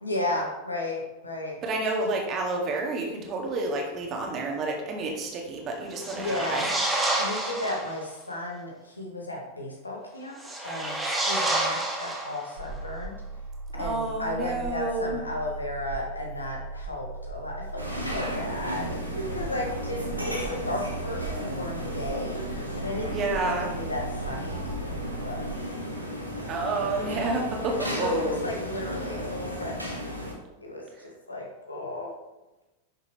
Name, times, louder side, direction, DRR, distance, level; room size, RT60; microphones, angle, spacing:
voice 1, 0.0-1.6 6.2-6.7 7.2-10.4 10.6-11.0 11.3-13.2 13.7-25.6 28.0-30.0 30.6-32.1, left 1 dB, 80° left, -1 dB, 2.1 m, -34 dB
voice 2, 1.6-6.7 13.7-15.2 23.1-23.8 26.5-28.4 30.9-31.1, right 2 dB, 30° right, 1 dB, 2.0 m, -30 dB
sound 1, 5.9-8.0 10.3-12.7, right 1 dB, 5° right, 1.8 m, -29 dB
sound 2, 12.6-25.5, right 3 dB, 70° right, 1.7 m, -38 dB
sound 3, 17.8-30.3, equal, 90° right, 1.7 m, -34 dB
10.5 x 6.6 x 3.2 m, 1.0 s
figure-of-eight pair, 90°, 0 cm